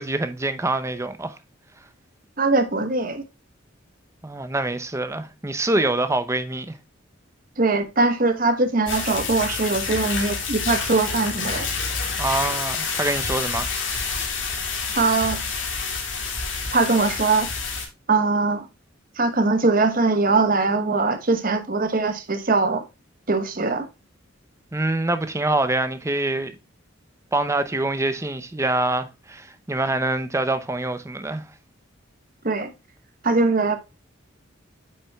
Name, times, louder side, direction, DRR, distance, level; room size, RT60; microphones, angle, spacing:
voice 1, 0.0-1.4 4.2-6.8 12.2-13.7 24.7-26.6 27.3-31.5, right 2 dB, 15° right, 0.7 m, -25 dB
voice 2, 2.4-3.2 7.6-11.7 14.9-15.4 16.7-17.5 18.1-18.7 19.2-22.8 23.3-23.9 32.4-32.7 33.2-33.8, right 3 dB, 45° right, 1.1 m, -21 dB
sound 1, 8.9-17.9, left 5 dB, 70° left, 2.7 m, -28 dB
8.9 x 6.0 x 2.3 m
head